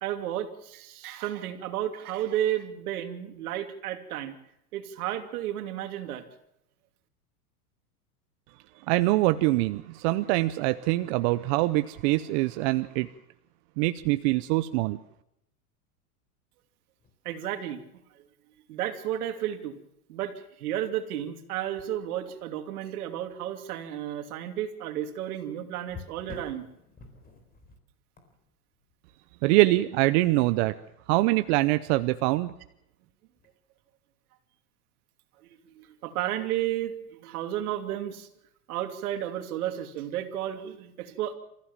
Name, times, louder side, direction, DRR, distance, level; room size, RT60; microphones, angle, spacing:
voice 1, 0.0-4.3 4.7-6.2 17.2-17.8 18.7-19.7 20.1-26.7 35.8-38.3 38.7-41.3, right 11 dB, 70° right, 8 dB, 2.9 m, -32 dB
voice 2, 8.9-13.1 13.8-15.0 29.4-30.7 31.1-32.5, right 19 dB, 45° right, 12 dB, 0.8 m, -24 dB
sound 1, 16.8-17.2 18.7-18.8 19.5-19.6 21.8-22.6 23.1-23.4 25.8-29.5 33.3-33.5, left 4 dB, 20° left, 4.0 m, -49 dB
27.5 x 15.0 x 7.4 m, 0.82 s
supercardioid pair, 140°, 46 cm